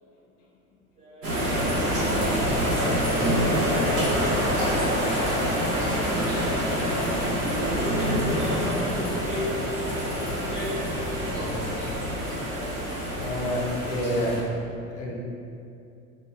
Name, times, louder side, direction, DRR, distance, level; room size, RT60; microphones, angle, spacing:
voice 1, 1.0-2.3 7.5-9.5 9.9-11.8, equal, 15° right, -9 dB, 0.4 m, -37 dB
sound 1, 1.2-14.4, equal, 85° right, 0.7 m, -26 dB
voice 2, 13.2-14.3 14.9-15.1, equal, 60° left, -2 dB, 0.6 m, -28 dB
2.2 x 2.2 x 2.7 m, 2.5 s
figure-of-eight pair, 70°, 44 cm